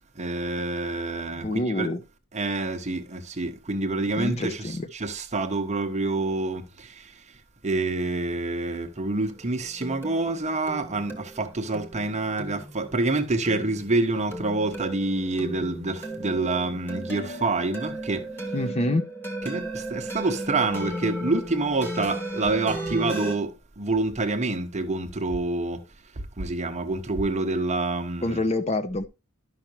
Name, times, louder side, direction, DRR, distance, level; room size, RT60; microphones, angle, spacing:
voice 1, 0.2-1.9 2.3-6.9 7.6-18.3 19.4-25.8 26.4-28.4, right 2 dB, 30° right, 0.9 m, -27 dB
voice 2, 1.3-2.0 4.2-4.9 18.5-19.0 28.2-29.1, left 1 dB, 30° left, 0.6 m, -26 dB
sound 1, 9.2-23.4, right 1 dB, 10° left, 1.6 m, -36 dB
12.0 x 5.8 x 2.9 m
head